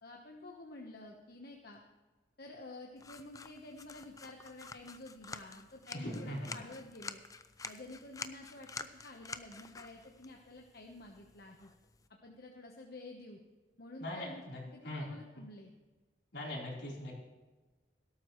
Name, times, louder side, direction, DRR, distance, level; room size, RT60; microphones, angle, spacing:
voice 1, 0.0-1.8 2.4-7.2 7.6-11.7 12.2-13.4 13.8-15.7, left 2 dB, 60° left, 1 dB, 1.1 m, -50 dB
sound 1, 3.0-12.1, left 4 dB, 20° left, 0.5 m, -49 dB
voice 2, 5.9-6.6 14.0-15.2 16.3-17.1, left 1 dB, 80° left, -3 dB, 3.9 m, -41 dB
17.5 x 12.5 x 3.1 m, 1.2 s
head